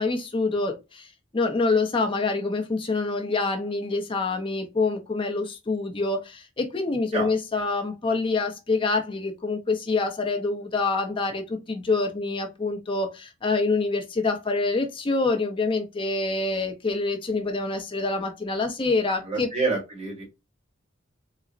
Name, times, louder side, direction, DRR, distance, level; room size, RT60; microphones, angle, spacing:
voice 1, 0.0-19.5, left 3 dB, 25° left, 0.5 m, -26 dB
voice 2, 7.1-7.7 19.2-20.2, right 3 dB, 30° right, 1.3 m, -29 dB
3.7 x 2.0 x 2.4 m
head